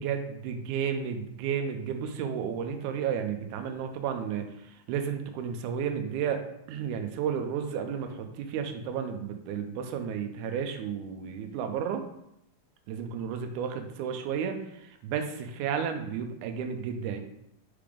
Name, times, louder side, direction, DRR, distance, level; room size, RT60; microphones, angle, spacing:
voice 1, 0.0-12.0 12.9-17.2, right 7 dB, 85° right, 6 dB, 2.0 m, -32 dB
5.8 x 3.5 x 5.1 m, 0.81 s
omnidirectional pair, 3.5 m